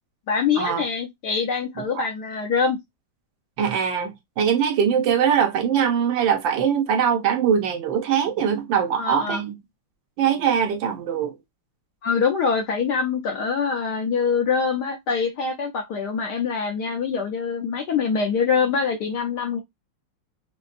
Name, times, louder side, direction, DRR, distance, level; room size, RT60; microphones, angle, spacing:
voice 1, 0.3-2.8 9.0-9.4 12.0-19.6, left 5 dB, 65° left, 1.1 m, -24 dB
voice 2, 1.8-2.1 3.6-9.6 10.2-11.3, right 8 dB, 70° right, 1.3 m, -22 dB
5.2 x 2.2 x 2.5 m
omnidirectional pair, 2.3 m